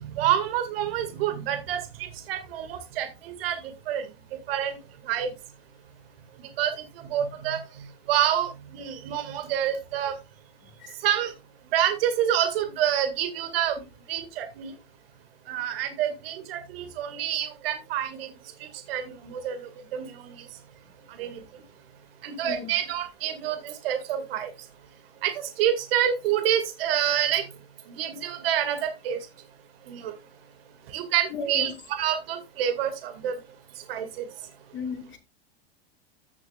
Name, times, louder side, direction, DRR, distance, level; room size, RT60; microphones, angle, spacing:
voice 1, 0.0-4.1 4.5-4.8 5.0-5.3 6.6-10.1 11.0-11.3 11.7-13.8 14.1-14.7 15.5-18.3 18.6-20.5 21.1-21.4 22.2-24.5 25.2-27.5 27.9-29.2 29.9-30.1 30.9-31.7 32.0-33.4 33.9-34.3, right 10 dB, 65° right, 2.0 m, -28 dB
voice 2, 31.3-31.7 34.7-35.2, left 3 dB, 40° left, 3.2 m, -33 dB
15.5 x 6.7 x 2.4 m
hypercardioid pair, 100°, 31 cm